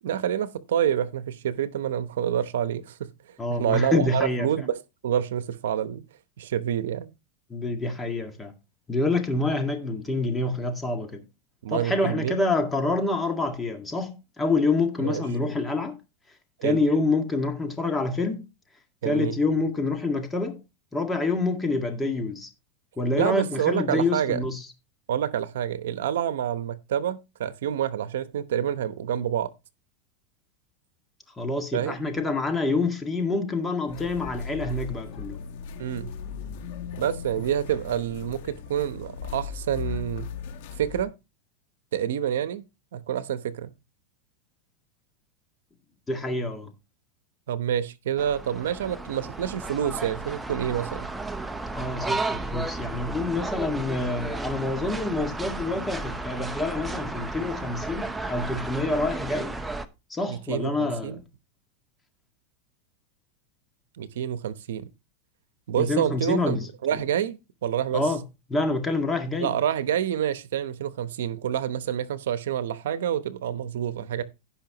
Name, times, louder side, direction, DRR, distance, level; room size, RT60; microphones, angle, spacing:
voice 1, 0.0-3.1 3.5-6.0 6.4-7.1 11.6-12.4 15.0-15.2 16.6-16.8 19.0-19.4 23.2-24.4 25.1-29.5 31.7-31.9 35.8-36.1 37.0-40.3 40.8-41.1 41.9-42.6 42.9-43.7 47.5-51.1 60.3-61.2 64.0-64.9 65.7-68.1 69.4-74.2, right 10 dB, 85° right, 0.9 m, -28 dB
voice 2, 3.4-4.5 7.5-8.5 8.9-11.2 11.7-16.0 16.6-18.4 19.0-20.6 20.9-22.5 23.0-24.6 31.4-35.4 46.1-46.7 51.7-59.6 60.1-61.2 65.8-66.7 67.9-68.2 68.5-69.5, left 3 dB, 10° left, 1.9 m, -27 dB
sound 1, 33.9-41.0, left 7 dB, 65° left, 2.0 m, -38 dB
sound 2, 48.2-59.9, right 2 dB, 10° right, 0.8 m, -33 dB
16.5 x 5.7 x 2.9 m
supercardioid pair, 130°, 0 cm